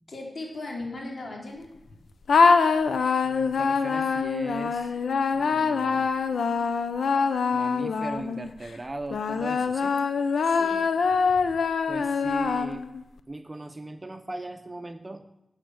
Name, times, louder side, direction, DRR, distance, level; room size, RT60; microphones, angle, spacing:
voice 1, 0.1-1.7 10.4-10.8 11.3-11.4, left 2 dB, 60° left, -1 dB, 3.9 m, -37 dB
sound 1, 2.3-8.5 9.1-13.0, left 5 dB, 85° left, 0.8 m, -24 dB
voice 2, 3.2-4.9 5.3-6.1 7.5-10.0 11.9-12.9 13.3-15.3, right 2 dB, 25° right, 8 dB, 1.0 m, -38 dB
12.0 x 8.2 x 6.5 m, 0.87 s
cardioid pair, 45°, 0 cm